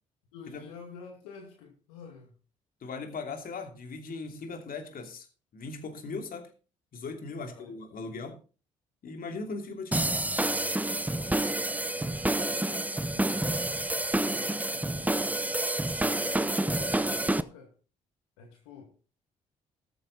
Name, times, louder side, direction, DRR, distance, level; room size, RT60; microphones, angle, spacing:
voice 1, 0.3-2.4 7.3-7.7 11.2-11.5 11.9-13.7 14.2-15.2 16.1-17.7 18.4-18.9, left 6 dB, 85° left, 2.1 m, -49 dB
voice 2, 2.8-5.3 5.5-6.5 6.9-8.4 9.0-10.0, left 4 dB, 55° left, 2.8 m, -39 dB
sound 1, 9.9-17.4, right 1 dB, 10° right, 0.8 m, -28 dB
13.5 x 9.3 x 4.0 m
hypercardioid pair, 45°, 17 cm